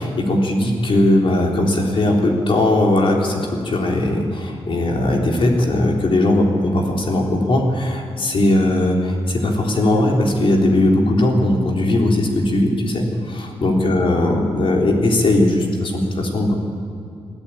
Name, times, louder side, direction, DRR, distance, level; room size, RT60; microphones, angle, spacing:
voice 1, 0.0-16.6, left 1 dB, 55° left, 0 dB, 3.8 m, -18 dB
21.5 x 14.5 x 8.8 m, 2.5 s
wide cardioid pair, 110°, 11 cm